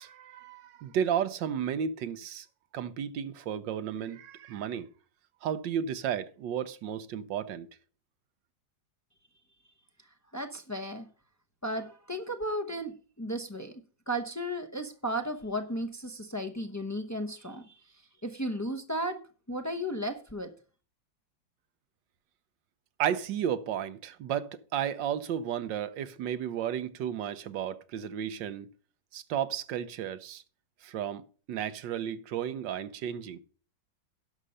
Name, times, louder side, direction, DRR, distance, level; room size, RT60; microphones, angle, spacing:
voice 1, 0.0-2.5 2.7-4.9 5.4-7.7 23.0-28.7 29.1-30.4 30.8-33.4, right 9 dB, 80° right, 1.4 m, -33 dB
voice 2, 10.3-11.1 11.6-17.8 18.2-20.5, equal, 25° left, 0.3 m, -35 dB
11.5 x 6.5 x 5.5 m
omnidirectional pair, 2.0 m